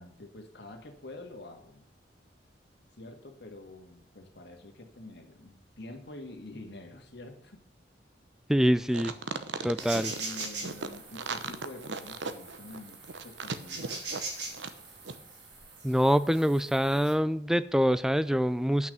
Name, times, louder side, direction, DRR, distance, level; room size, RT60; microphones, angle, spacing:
voice 1, 0.0-1.8 3.0-7.6 10.1-13.0 13.2-14.2, left 2 dB, 65° left, 4 dB, 1.9 m, -47 dB
voice 2, 8.5-9.2 9.6-10.2 15.8-18.9, equal, 5° right, 15 dB, 0.4 m, -25 dB
sound 1, 8.9-14.8 15.0-15.2, right 4 dB, 90° right, 0.9 m, -37 dB
sound 2, 9.8-17.1, right 3 dB, 65° right, 3.6 m, -42 dB
9.3 x 5.9 x 7.9 m, 0.75 s
head